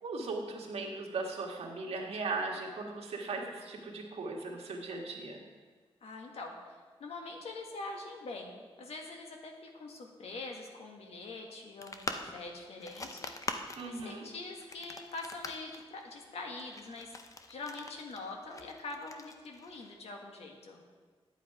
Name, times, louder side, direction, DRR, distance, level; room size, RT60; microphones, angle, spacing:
voice 1, 0.0-5.4 13.8-14.3, right 3 dB, 80° right, -1 dB, 1.7 m, -38 dB
voice 2, 6.0-6.5 7.0-17.1 17.5-20.8, left 3 dB, 80° left, 2 dB, 1.6 m, -44 dB
sound 1, 11.8-20.0, left 3 dB, 35° left, 0.7 m, -44 dB
10.5 x 8.3 x 4.8 m, 1.5 s
wide cardioid pair, 125°, 10 cm